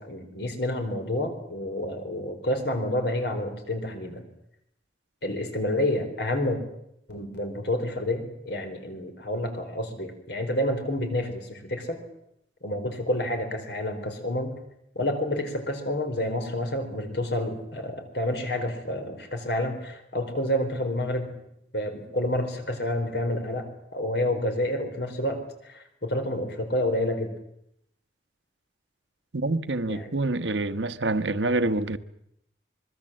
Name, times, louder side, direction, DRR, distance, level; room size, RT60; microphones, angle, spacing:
voice 1, 0.0-4.2 5.2-6.6 7.1-12.0 12.6-14.5 14.9-21.3 21.7-27.3 29.9-30.2, left 1 dB, 70° left, 4.6 m, -29 dB
voice 2, 29.3-32.0, right 2 dB, 85° right, 1.2 m, -26 dB
25.5 x 21.5 x 7.7 m
head